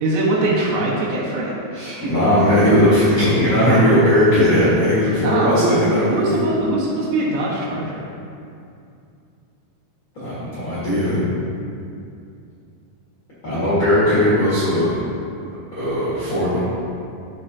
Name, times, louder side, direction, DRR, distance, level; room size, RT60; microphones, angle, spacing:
voice 1, 0.0-1.6 5.2-8.1, right 2 dB, 80° right, -6 dB, 4.0 m, -22 dB
voice 2, 1.7-6.4 10.1-11.2 13.4-15.0 15.7-16.6, equal, 65° left, -12 dB, 1.2 m, -17 dB
13.5 x 4.8 x 2.9 m, 2.5 s
omnidirectional pair, 5.6 m